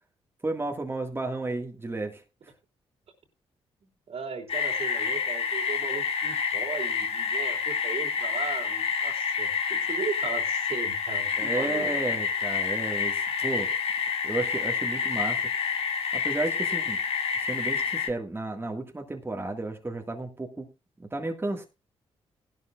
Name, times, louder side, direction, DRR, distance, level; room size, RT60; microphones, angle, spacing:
voice 1, 0.4-2.2 11.4-13.7 14.2-15.4 16.1-17.0 17.5-20.7 21.0-21.6, right 2 dB, 20° right, 3 dB, 1.9 m, -33 dB
voice 2, 4.1-12.0, right 5 dB, 60° right, 4 dB, 3.1 m, -37 dB
sound 1, 4.5-18.1, left 6 dB, 60° left, 2.3 m, -28 dB
16.0 x 12.0 x 2.5 m, 0.26 s
cardioid pair, 65°, 11 cm